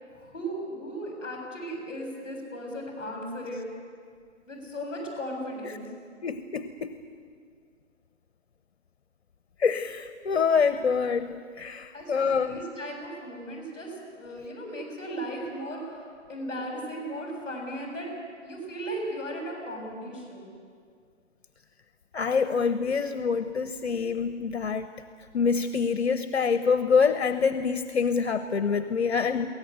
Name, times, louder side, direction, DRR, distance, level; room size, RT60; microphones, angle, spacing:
voice 1, 0.1-3.7 4.4-5.9 11.9-16.0 16.3-18.1 18.4-20.5, equal, 10° left, -2 dB, 7.3 m, -36 dB
voice 2, 6.2-7.0 9.6-12.7 22.1-24.9 25.3-29.5, left 5 dB, 60° left, 10 dB, 0.9 m, -26 dB
23.0 x 18.0 x 8.1 m, 2.2 s
hypercardioid pair, 165°, 37 cm